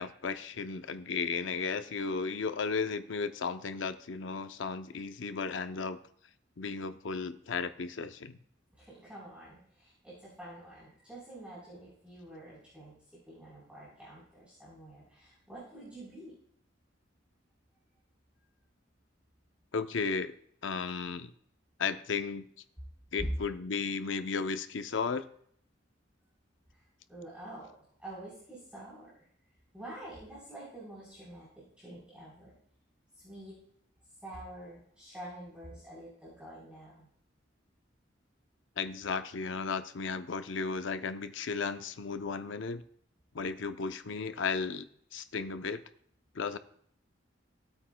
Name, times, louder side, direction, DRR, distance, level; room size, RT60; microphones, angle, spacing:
voice 1, 0.0-6.0 6.6-8.4 19.7-20.3 20.6-21.3 21.8-22.5 23.1-25.3 38.8-42.8 43.3-44.9 45.1-45.8 46.3-46.6, left 5 dB, 80° left, 10 dB, 0.6 m, -34 dB
voice 2, 8.8-13.0 13.3-16.3 26.7-26.8 27.1-29.1 29.7-32.5 33.2-33.5 34.2-37.1, right 1 dB, 5° right, -9 dB, 3.8 m, -48 dB
16.0 x 8.8 x 2.2 m, 0.63 s
head